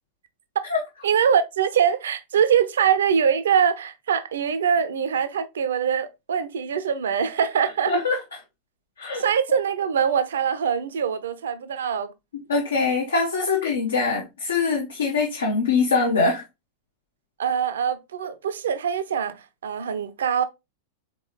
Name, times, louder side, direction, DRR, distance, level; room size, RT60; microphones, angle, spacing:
voice 1, 1.0-7.9 9.1-12.1 17.4-20.4, right 7 dB, 65° right, 0.5 m, -23 dB
voice 2, 7.9-8.2 9.0-9.2 12.5-16.4, left 4 dB, 70° left, 0.8 m, -23 dB
3.9 x 3.7 x 3.0 m
figure-of-eight pair, 90°, 0 cm